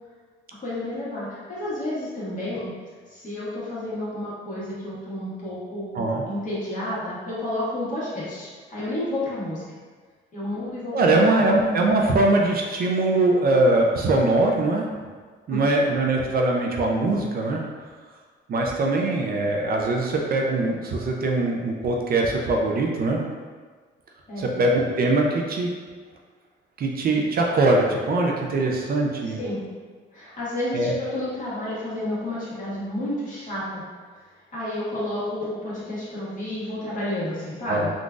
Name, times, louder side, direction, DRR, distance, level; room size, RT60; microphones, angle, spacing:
voice 1, 0.6-2.7 3.1-9.6 10.3-11.4 15.5-15.6 24.3-24.5 29.2-29.6 30.1-33.8 34.5-37.9, left 1 dB, 40° left, -9 dB, 1.5 m, -31 dB
voice 2, 10.9-14.8 15.5-17.6 18.5-23.2 24.4-25.7 26.8-29.4 30.7-30.9 37.7-37.9, right 2 dB, 50° right, 0 dB, 0.4 m, -22 dB
3.8 x 2.4 x 2.4 m, 1.5 s
cardioid pair, 90°, 20 cm